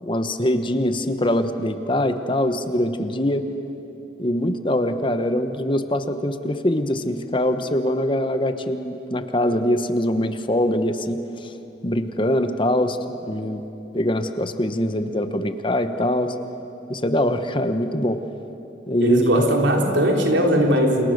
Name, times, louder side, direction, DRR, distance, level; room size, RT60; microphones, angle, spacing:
voice 1, 0.0-3.5 4.2-11.5 11.8-13.0 13.3-13.6 13.9-16.3 16.9-18.2 18.9-19.3 20.2-20.7, left 1 dB, 25° left, 9 dB, 1.1 m, -23 dB
voice 2, 19.0-21.1, equal, 80° right, 1 dB, 3.7 m, -19 dB
29.0 x 29.0 x 6.7 m, 3.0 s
head